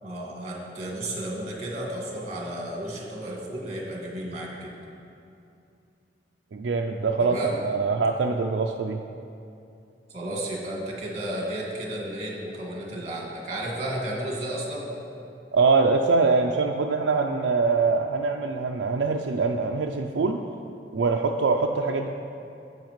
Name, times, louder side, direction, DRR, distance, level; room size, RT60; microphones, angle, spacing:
voice 1, 0.0-4.7 7.2-7.6 10.1-14.9, right 1 dB, 40° right, -3 dB, 1.7 m, -33 dB
voice 2, 6.5-7.4 7.6-9.0 15.5-20.4 20.9-22.1, right 4 dB, 85° right, 2 dB, 0.4 m, -23 dB
12.0 x 7.9 x 3.1 m, 2.6 s
head